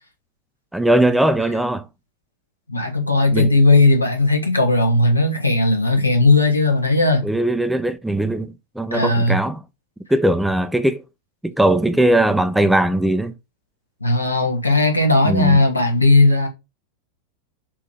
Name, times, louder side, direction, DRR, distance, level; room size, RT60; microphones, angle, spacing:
voice 1, 0.7-1.9 3.3-3.5 7.2-9.6 10.1-11.0 11.4-13.3 15.2-15.6, right 1 dB, 5° right, 0.4 m, -19 dB
voice 2, 2.7-7.3 8.9-9.4 14.0-16.5, left 2 dB, 85° left, 1.1 m, -16 dB
3.7 x 2.9 x 4.5 m
figure-of-eight pair, 90°, 0 cm